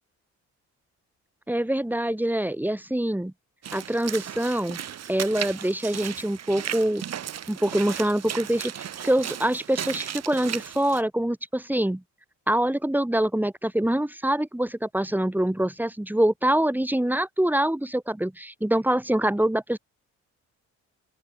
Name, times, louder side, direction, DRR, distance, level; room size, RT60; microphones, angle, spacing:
voice 1, 1.5-3.3 3.7-4.8 5.1-7.0 7.5-12.0 12.5-19.8, right 1 dB, 5° right, 5.3 m, -25 dB
Walk footsteps / Splash splatter, 3.6-11.0, right 9 dB, 60° right, 2.5 m, -35 dB
open air
cardioid pair, 90°, 30 cm